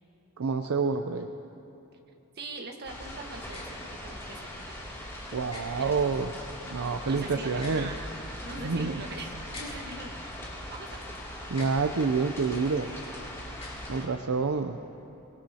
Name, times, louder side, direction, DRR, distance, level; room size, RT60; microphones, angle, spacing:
voice 1, 0.4-1.3 5.3-6.3 6.6-7.9 8.6-9.0 11.5-12.9 13.9-14.8, right 4 dB, 70° right, 6 dB, 0.6 m, -28 dB
voice 2, 2.3-4.9 5.6-6.2 6.8-10.2 10.7-11.0, right 2 dB, 50° right, 2 dB, 1.4 m, -42 dB
sound 1, 2.8-14.1, left 1 dB, 15° left, 2.6 m, -40 dB
sound 2, 3.5-3.7 5.5-5.6 7.5-7.8 9.5-9.7 11.5-11.8 13.5-13.8, left 3 dB, 30° left, 3.9 m, -44 dB
24.5 x 19.5 x 2.9 m, 2.9 s
head